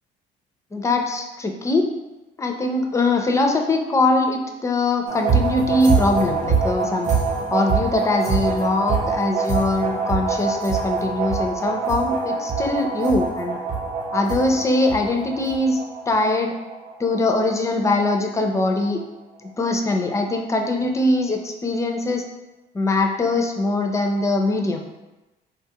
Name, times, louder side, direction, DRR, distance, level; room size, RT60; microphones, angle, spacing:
voice 1, 0.7-1.9 2.4-7.1 7.5-13.6 14.1-15.8 16.1-16.5 17.0-19.0 19.4-22.2 22.7-24.8, left 2 dB, 15° left, 3 dB, 0.4 m, -22 dB
sound 1, 5.1-18.1 18.5-18.6 19.0-19.1, right 4 dB, 45° right, 0.6 m, -25 dB
3.5 x 2.3 x 2.8 m, 1.1 s
cardioid pair, 110°, 17 cm